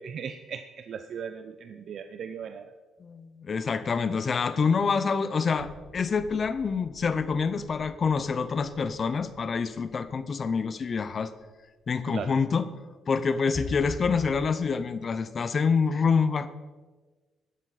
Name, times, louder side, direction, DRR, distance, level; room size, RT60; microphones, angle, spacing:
voice 1, 0.0-2.7 12.1-12.3, right 7 dB, 60° right, 9 dB, 0.6 m, -37 dB
voice 2, 3.0-11.3 11.9-12.6 13.1-16.5, left 5 dB, 45° left, 12 dB, 0.7 m, -26 dB
sound 1, 5.6-11.1 13.5-14.4, left 2 dB, 30° left, 3.4 m, -44 dB
12.0 x 11.5 x 4.2 m, 1.3 s
cardioid pair, 90°, 0 cm